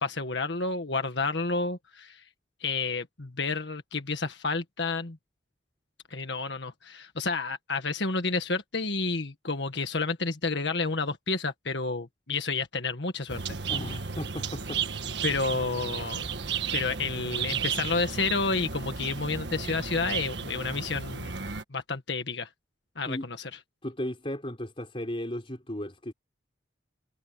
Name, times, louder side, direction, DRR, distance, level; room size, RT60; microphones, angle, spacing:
voice 1, 0.0-2.2 2.6-5.2 6.1-13.4 15.2-16.3 16.7-21.4 21.7-22.5 22.9-23.5, left 3 dB, 65° left, 1.7 m, -30 dB
sound 1, 13.3-21.6, right 6 dB, 65° right, 1.5 m, -34 dB
voice 2, 13.7-14.8 23.0-23.3 23.8-26.1, left 1 dB, 30° left, 5.0 m, -35 dB
head